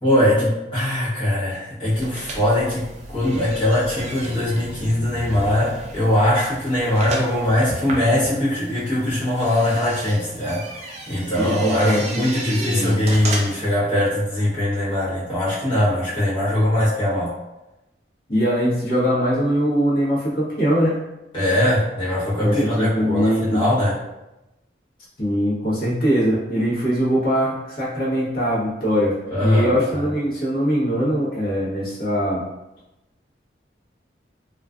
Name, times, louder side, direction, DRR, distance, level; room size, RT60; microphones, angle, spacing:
voice 1, 0.0-2.9 3.1-10.6 11.1-17.3 21.3-24.0 29.3-30.0, left 1 dB, 30° left, -10 dB, 1.0 m, -21 dB
sound 1, 1.9-13.7, right 2 dB, 35° right, 0.3 m, -34 dB
voice 2, 11.4-13.0 18.3-21.0 22.4-23.7 25.2-29.1 29.4-32.4, equal, 55° left, -8 dB, 0.9 m, -22 dB
2.4 x 2.3 x 2.3 m, 0.97 s
head